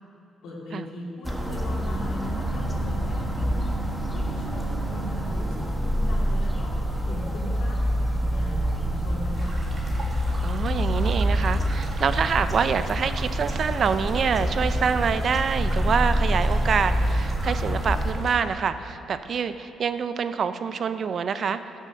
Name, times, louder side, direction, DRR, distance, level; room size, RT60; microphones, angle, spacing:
voice 1, 0.4-6.7 7.0-9.6, left 1 dB, 70° left, -6 dB, 2.6 m, -39 dB
sound 1, 1.2-18.1, equal, 5° right, 1.4 m, -26 dB
sound 2, 9.3-18.4, right 2 dB, 35° right, 2.4 m, -43 dB
voice 2, 10.4-21.6, right 6 dB, 55° right, 11 dB, 0.6 m, -26 dB
16.0 x 7.4 x 6.4 m, 2.8 s
cardioid pair, 90°, 0 cm